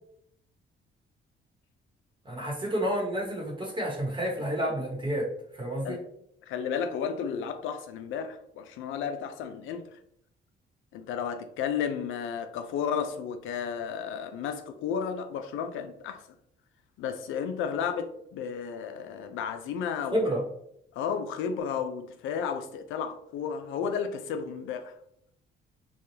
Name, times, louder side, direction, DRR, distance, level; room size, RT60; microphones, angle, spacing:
voice 1, 2.2-5.3 5.5-6.0 20.1-20.5, equal, 25° right, 1.0 m, -30 dB
voice 2, 6.4-9.8 10.9-16.2 17.0-20.3 20.9-24.9, left 7 dB, 85° left, 0.4 m, -33 dB
3.2 x 2.2 x 2.7 m
cardioid pair, 90°, 20 cm